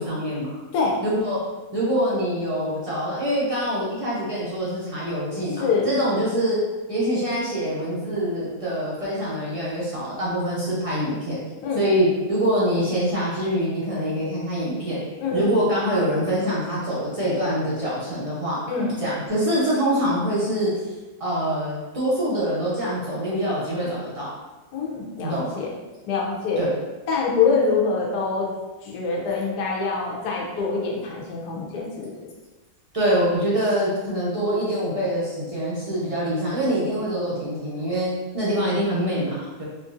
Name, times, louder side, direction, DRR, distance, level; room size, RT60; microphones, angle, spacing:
voice 1, 0.0-0.5 1.0-1.4 1.7-6.6 6.9-11.4 11.8-15.0 15.3-18.6 19.0-20.7 21.2-24.3 25.2-25.5 26.6-26.7 32.9-39.6, equal, 60° right, -8 dB, 0.3 m, -24 dB
voice 2, 0.7-1.0 5.6-5.9 11.6-11.8 15.2-15.4 18.7-19.0 24.7-25.7 26.1-26.6 27.1-28.5 28.8-32.1, left 4 dB, 80° left, -2 dB, 1.3 m, -24 dB
4.2 x 2.5 x 2.5 m, 1.2 s
omnidirectional pair, 1.7 m